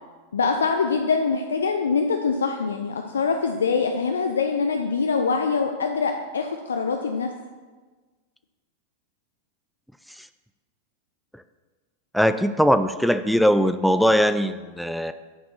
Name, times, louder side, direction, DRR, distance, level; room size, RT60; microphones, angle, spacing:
voice 1, 0.3-7.3, left 5 dB, 70° left, 5 dB, 0.5 m, -24 dB
voice 2, 12.1-15.1, equal, ahead, 10 dB, 0.3 m, -21 dB
10.0 x 4.3 x 5.6 m, 1.4 s
figure-of-eight pair, 90°, 0 cm